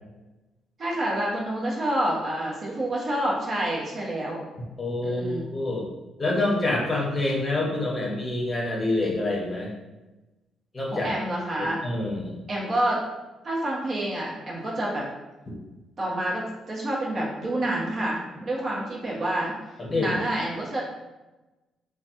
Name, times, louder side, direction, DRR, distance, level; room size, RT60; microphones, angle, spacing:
voice 1, 0.8-4.4 5.0-5.5 10.9-11.8 12.5-13.0 13.4-15.0 16.0-19.5 20.0-20.8, right 1 dB, 50° right, -4 dB, 0.9 m, -28 dB
voice 2, 4.8-5.9 6.2-9.7 10.7-11.1 11.6-12.4 19.8-20.2, left 2 dB, 30° left, -3 dB, 0.8 m, -27 dB
3.2 x 2.2 x 2.7 m, 1.1 s
cardioid pair, 90°, 0 cm